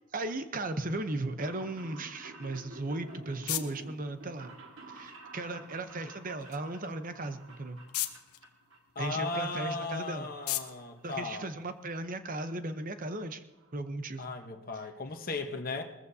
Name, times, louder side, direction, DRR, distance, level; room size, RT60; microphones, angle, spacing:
voice 1, 0.1-4.5 4.9-7.8 9.0-10.3 11.0-13.4 13.7-14.3, right 2 dB, 40° right, 9 dB, 0.8 m, -36 dB
sound 1, 1.2-8.8 9.1-9.8 10.1-11.2 11.4-11.5 12.5-12.6 12.7-12.8 13.1-13.2 13.5-13.8 14.1-14.2 14.4-14.5, right 2 dB, 60° right, 1.9 m, -51 dB
sound 2, 2.7-12.1, left 13 dB, 80° left, 0.9 m, -42 dB
voice 2, 8.9-11.5 14.2-15.8, left 3 dB, 40° left, 4 dB, 1.1 m, -36 dB
21.0 x 14.5 x 2.8 m, 1.1 s
head